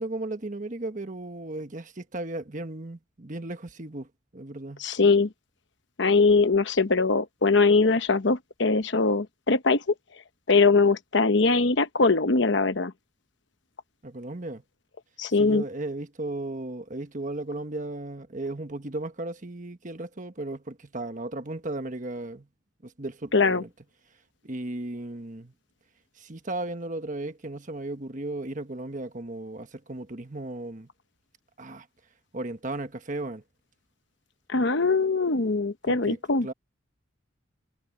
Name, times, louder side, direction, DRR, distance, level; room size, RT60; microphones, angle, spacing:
voice 1, 0.0-4.8 14.0-14.6 15.3-22.5 22.8-23.7 24.4-25.5 26.1-30.9 31.6-31.9 32.3-33.4 35.8-36.5, right 2 dB, 40° right, 1.3 m, -35 dB
voice 2, 4.8-5.3 6.0-9.8 10.5-12.9 15.2-15.6 23.3-23.6 34.5-36.5, left 3 dB, 60° left, 1.0 m, -22 dB
head